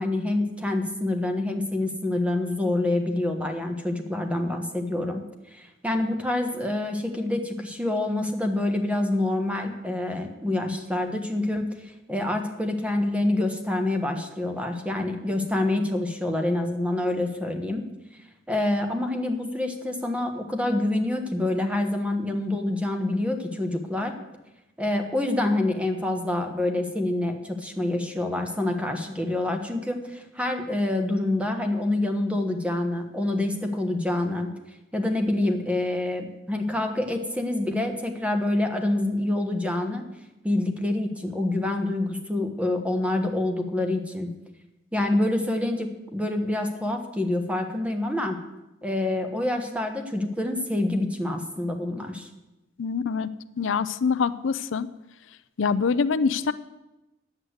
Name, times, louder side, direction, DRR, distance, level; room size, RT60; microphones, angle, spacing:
voice 1, 0.0-5.2 5.5-17.9 18.5-24.1 24.8-34.5 34.9-40.0 40.4-44.3 44.9-48.4 48.8-52.3, left 1 dB, 5° right, 5 dB, 1.2 m, -26 dB
voice 2, 52.8-53.3 53.6-54.9 55.6-56.5, left 5 dB, 80° left, 14 dB, 0.5 m, -24 dB
10.0 x 8.0 x 8.0 m, 1.0 s
head